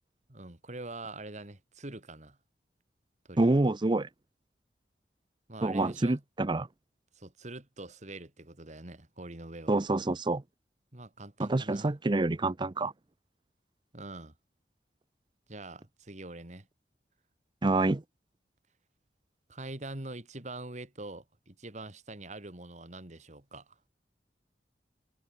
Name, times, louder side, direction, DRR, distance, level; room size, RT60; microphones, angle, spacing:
voice 1, 0.3-2.4 3.3-3.5 5.5-6.2 7.2-9.7 10.9-11.9 13.9-14.3 15.5-16.7 19.5-23.8, right 2 dB, 40° right, 2.3 m, -44 dB
voice 2, 3.4-4.1 5.6-6.7 9.7-10.4 11.4-12.9 17.6-18.0, right 2 dB, 25° right, 0.6 m, -27 dB
head